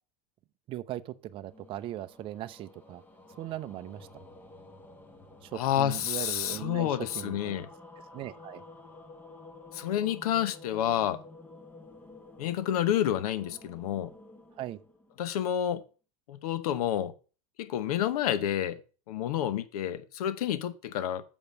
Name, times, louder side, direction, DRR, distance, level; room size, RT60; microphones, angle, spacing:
voice 1, 0.7-3.0 3.4-4.2 5.4-7.6 8.1-8.6 14.6-14.8, right 13 dB, 30° right, 0.5 m, -39 dB
sound 1, 1.2-15.7, left 2 dB, 10° left, 1.0 m, -51 dB
voice 2, 5.5-7.7 9.7-11.2 12.4-14.1 15.2-15.8 16.3-17.1 17.6-18.8 19.1-21.2, left 10 dB, 85° left, 0.9 m, -29 dB
7.2 x 5.2 x 6.7 m
supercardioid pair, 150°, 19 cm